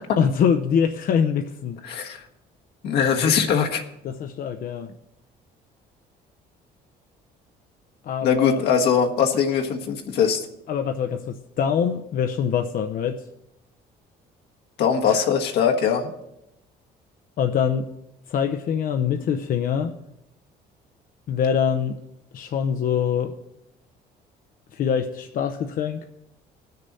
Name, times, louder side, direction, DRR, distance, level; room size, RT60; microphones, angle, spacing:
voice 1, 0.2-2.0 3.2-3.3 4.0-4.9 8.0-8.6 10.7-13.2 15.1-15.3 17.4-17.8 18.3-20.0 21.3-22.0 22.3-23.3 24.7-26.1, left 7 dB, 55° left, 6 dB, 0.7 m, -24 dB
voice 2, 1.8-2.2 2.8-3.8 8.2-10.5 14.8-16.1, left 7 dB, 75° left, 2 dB, 1.5 m, -21 dB
19.0 x 6.7 x 4.2 m, 0.86 s
cardioid pair, 110°, 17 cm